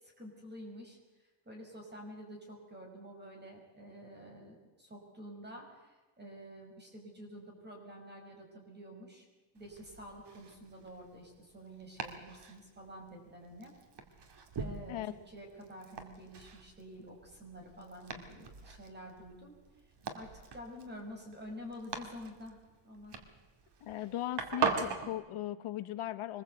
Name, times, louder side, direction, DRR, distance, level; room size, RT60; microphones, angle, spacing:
voice 1, 0.0-1.0 1.5-9.3 9.5-13.7 14.5-19.5 20.1-23.2, equal, 20° right, 2 dB, 5.8 m, -49 dB
Domestic sounds home sounds, 9.6-25.1, right 5 dB, 55° right, 2.4 m, -42 dB
voice 2, 23.8-26.4, left 13 dB, 85° left, 10 dB, 1.3 m, -38 dB
24.0 x 20.5 x 8.1 m, 1.2 s
wide cardioid pair, 170°, 49 cm